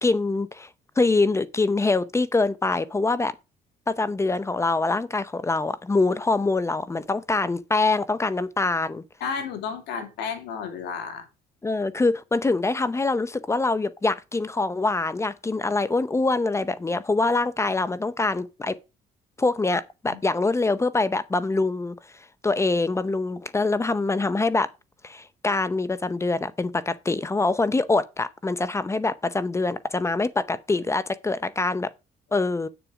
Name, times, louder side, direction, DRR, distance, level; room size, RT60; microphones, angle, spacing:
voice 1, 0.0-0.7 1.0-3.3 3.9-9.0 11.6-18.8 19.4-24.7 25.0-31.9 32.3-32.7, left 3 dB, 15° left, 0.7 m, -24 dB
voice 2, 9.2-11.3 20.1-20.2, left 6 dB, 85° left, 2.6 m, -32 dB
8.5 x 7.0 x 4.8 m
cardioid pair, 110°, 17 cm